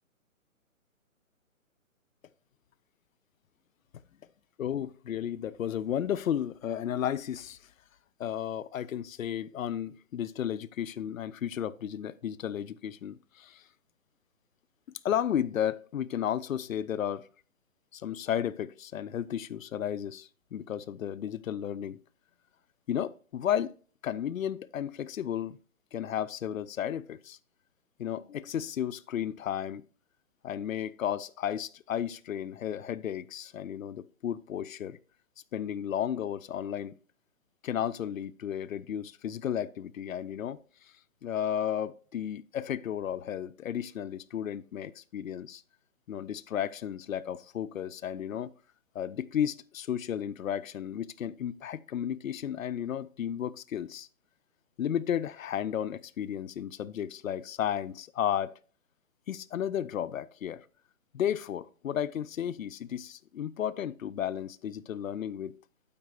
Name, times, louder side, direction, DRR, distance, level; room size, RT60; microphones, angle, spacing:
voice 1, 4.6-7.6 8.2-13.6 15.0-17.3 17.9-22.0 22.9-23.7 24.0-25.6 25.9-27.4 28.0-29.8 30.4-35.0 35.5-36.9 37.6-40.9 41.2-45.6 46.1-48.5 48.9-54.1 54.8-58.5 59.3-60.7 61.1-65.6, left 9 dB, 75° left, 0.6 m, -33 dB
8.6 x 8.5 x 2.4 m
hypercardioid pair, 145°, 41 cm